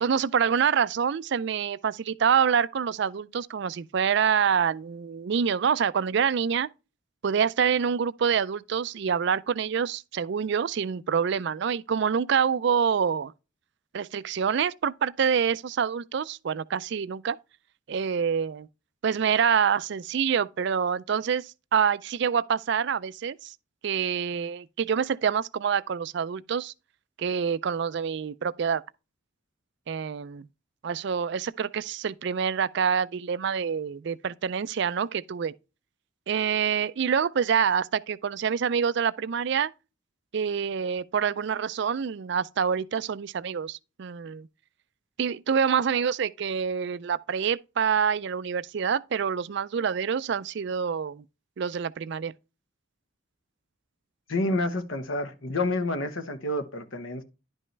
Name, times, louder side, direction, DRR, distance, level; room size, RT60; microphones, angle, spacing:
voice 1, 0.0-6.7 7.2-13.3 13.9-17.4 17.9-18.7 19.0-23.5 23.8-26.7 27.2-28.8 29.9-30.5 30.8-35.5 36.3-39.7 40.3-44.5 45.2-51.2 51.6-52.3, right 7 dB, 60° right, 0.4 m, -26 dB
voice 2, 54.3-57.2, left 2 dB, 80° left, 1.2 m, -29 dB
10.5 x 5.3 x 3.3 m
head